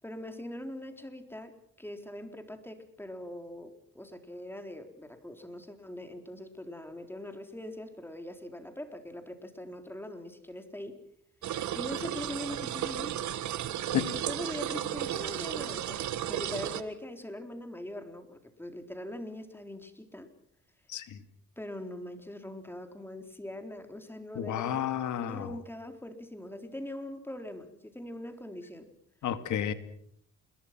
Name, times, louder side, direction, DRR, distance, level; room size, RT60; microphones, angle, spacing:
voice 1, 0.0-11.0 11.7-13.2 13.9-20.3 21.6-24.9 25.2-28.9, left 1 dB, 5° left, 6 dB, 4.1 m, -42 dB
sound 1, 11.4-16.8, right 11 dB, 70° right, 1.5 m, -34 dB
voice 2, 24.4-25.5 29.2-29.7, left 10 dB, 75° left, 11 dB, 2.4 m, -31 dB
28.0 x 21.5 x 6.1 m, 0.69 s
cardioid pair, 90°, 30 cm